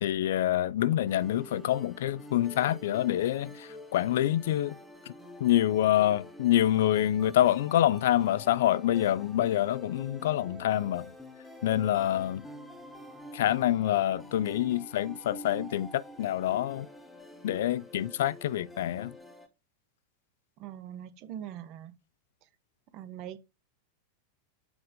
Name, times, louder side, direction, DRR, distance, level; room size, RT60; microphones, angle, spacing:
voice 1, 0.0-4.8 5.4-11.1 11.6-12.4 13.3-16.9 17.4-19.1, left 12 dB, 55° left, 0.3 m, -26 dB
sound 1, 1.1-19.5, left 1 dB, 5° left, 1.2 m, -48 dB
voice 2, 20.6-21.9 22.9-23.4, right 10 dB, 40° right, 0.9 m, -42 dB
8.0 x 3.4 x 4.9 m
figure-of-eight pair, 90°, 0 cm